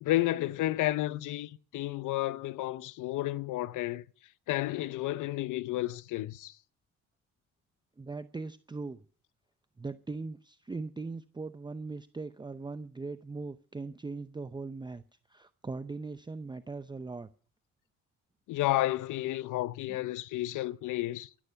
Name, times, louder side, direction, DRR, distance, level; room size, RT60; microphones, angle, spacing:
voice 1, 0.0-4.0 4.5-6.6 18.5-21.3, left 16 dB, 85° left, 0.7 m, -31 dB
voice 2, 8.0-9.0 9.8-15.0 15.3-17.3 19.9-20.0, right 3 dB, 15° right, 0.7 m, -40 dB
14.5 x 13.5 x 5.8 m
cardioid pair, 90°, 30 cm